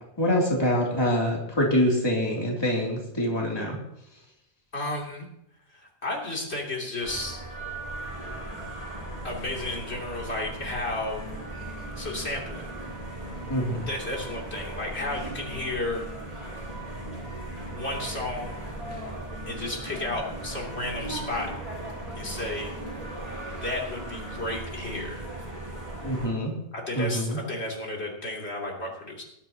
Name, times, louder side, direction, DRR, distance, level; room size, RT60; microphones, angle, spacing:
voice 1, 0.2-3.7 13.5-13.8 26.0-26.5 26.9-27.4, equal, 25° left, -3 dB, 2.9 m, -25 dB
voice 2, 4.7-5.3 5.7-7.4 9.2-11.2 12.0-12.7 13.9-16.0 17.7-18.6 19.5-21.5 22.2-22.7 23.6-25.2 26.7-29.2, left 2 dB, 85° left, -2 dB, 3.3 m, -33 dB
sound 1, 7.0-26.3, right 1 dB, 35° right, 4.3 m, -37 dB
18.5 x 12.5 x 2.9 m, 0.78 s
omnidirectional pair, 1.1 m